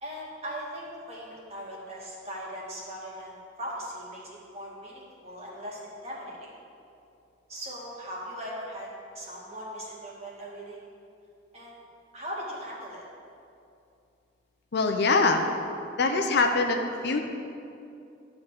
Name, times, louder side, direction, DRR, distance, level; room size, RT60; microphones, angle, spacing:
voice 1, 0.0-6.5 7.5-8.9 9.1-10.9 11.5-11.8 12.1-13.0, equal, 35° right, -5 dB, 2.0 m, -39 dB
voice 2, 14.7-15.4 16.0-17.2, left 3 dB, 60° left, 5 dB, 0.7 m, -23 dB
11.5 x 4.0 x 7.4 m, 2.6 s
head